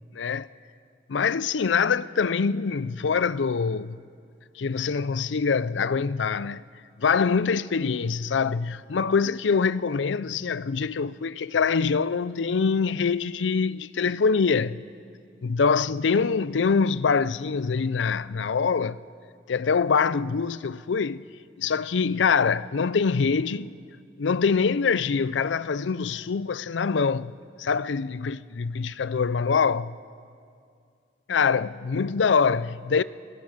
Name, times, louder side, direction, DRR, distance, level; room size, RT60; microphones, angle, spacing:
voice 1, 0.1-0.5 1.1-4.0 4.6-6.6 7.0-14.8 15.4-19.0 19.5-21.2 21.6-23.7 24.2-30.0 31.3-33.0, left 5 dB, 80° left, 0.5 m, -24 dB
26.0 x 18.0 x 6.5 m
head